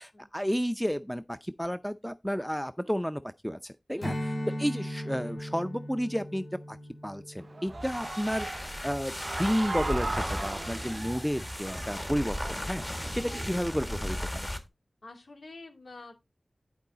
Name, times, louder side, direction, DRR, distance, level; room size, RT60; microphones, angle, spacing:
voice 1, 0.0-4.3 4.6-6.8 7.0-14.5, equal, ahead, 0.5 m, -32 dB
Strum, 4.0-8.8, equal, 60° left, 2.4 m, -38 dB
Human voice / Cheering, 7.4-14.0, right 3 dB, 55° right, 0.5 m, -39 dB
sound 1, 7.7-14.7, equal, 20° left, 1.8 m, -36 dB
voice 2, 15.0-16.1, left 3 dB, 75° left, 2.9 m, -48 dB
11.0 x 4.8 x 3.9 m
wide cardioid pair, 80°, 0 cm